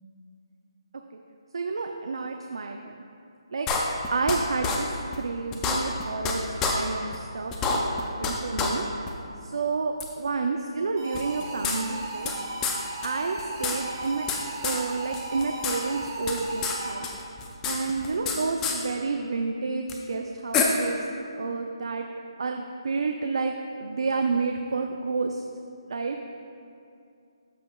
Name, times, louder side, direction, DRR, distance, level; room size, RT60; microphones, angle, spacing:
voice 1, 1.5-3.0 3.5-3.7 4.1-4.9 5.2-6.5 6.7-8.8 9.4-12.3 13.0-14.3 14.6-17.1 17.6-21.0 21.3-22.1 22.4-23.5 23.8-25.4 25.9-26.2, right 4 dB, 70° right, 3 dB, 0.4 m, -30 dB
sound 1, 3.7-4.4 4.6-4.8 5.1-5.2 5.5-6.3 6.6-6.7 7.1-7.2 7.5-8.3 8.6-8.7 9.1-9.2 10.0-10.1 11.1-12.3 12.6-12.8 13.0-13.1 13.4-14.4 14.6-14.8 15.1-15.8 16.0-16.8 17.0-18.4 18.6-18.8 19.9-20.0 20.5-20.6, left 5 dB, 10° left, 0.4 m, -27 dB
sound 2, 11.0-17.2, right 2 dB, 30° right, 1.4 m, -36 dB
13.5 x 5.1 x 2.3 m, 2.5 s
hypercardioid pair, 165°, 3 cm